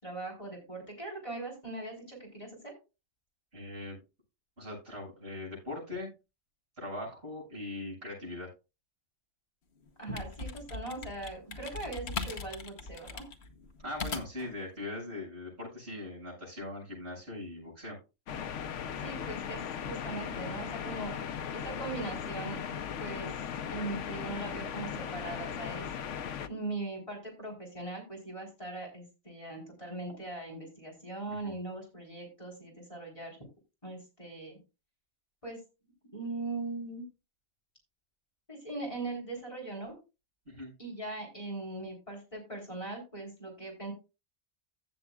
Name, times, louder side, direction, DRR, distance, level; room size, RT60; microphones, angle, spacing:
voice 1, 0.0-2.7 10.0-13.2 19.0-22.6 23.0-23.3 23.7-25.9 26.5-33.4 33.8-34.6 35.4-35.6 36.1-37.0 38.5-39.9 40.8-43.9, right 2 dB, 25° left, -1 dB, 3.9 m, -40 dB
voice 2, 3.5-4.0 4.6-6.1 6.8-8.5 13.8-18.0 31.4-31.6 40.5-40.7, left 2 dB, 55° right, -3 dB, 7.3 m, -40 dB
sound 1, 9.9-14.5, left 4 dB, 60° left, 1.3 m, -40 dB
sound 2, 18.3-26.5, left 8 dB, 75° left, 1.0 m, -38 dB
15.5 x 7.0 x 2.4 m, 0.29 s
omnidirectional pair, 1.3 m